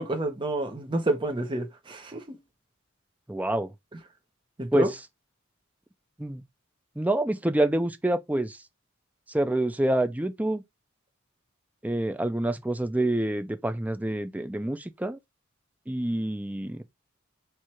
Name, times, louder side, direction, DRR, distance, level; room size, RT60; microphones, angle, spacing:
voice 1, 0.0-2.4 4.6-4.9, right 2 dB, 25° right, 0.8 m, -29 dB
voice 2, 3.3-3.7 4.7-5.0 6.2-6.4 7.0-8.6 9.3-10.6 11.8-15.2 15.9-16.8, right 1 dB, 5° right, 0.5 m, -27 dB
4.6 x 2.4 x 4.3 m
head